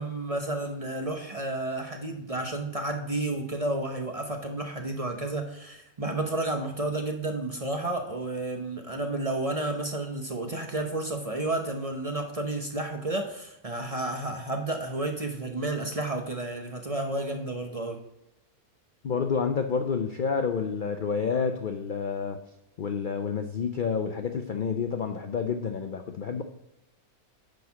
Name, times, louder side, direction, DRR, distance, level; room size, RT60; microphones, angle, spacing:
voice 1, 0.0-18.0, right 2 dB, 30° right, 2 dB, 0.7 m, -31 dB
voice 2, 19.0-22.4 22.8-26.4, left 6 dB, 75° left, 6 dB, 0.4 m, -29 dB
9.9 x 4.1 x 5.8 m, 0.90 s
omnidirectional pair, 1.6 m